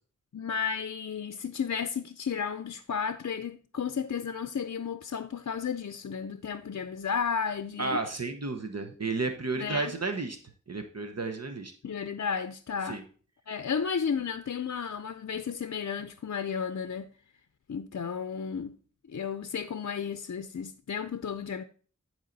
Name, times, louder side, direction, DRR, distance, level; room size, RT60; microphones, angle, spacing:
voice 1, 0.3-8.0 9.5-10.0 11.8-13.0 13.5-17.1 17.7-18.7 19.1-21.6, left 6 dB, 65° left, 0.5 m, -33 dB
voice 2, 7.8-10.4 10.7-11.7 12.9-13.0, right 3 dB, 55° right, 1.0 m, -32 dB
10.5 x 4.8 x 3.9 m
wide cardioid pair, 55°, 30 cm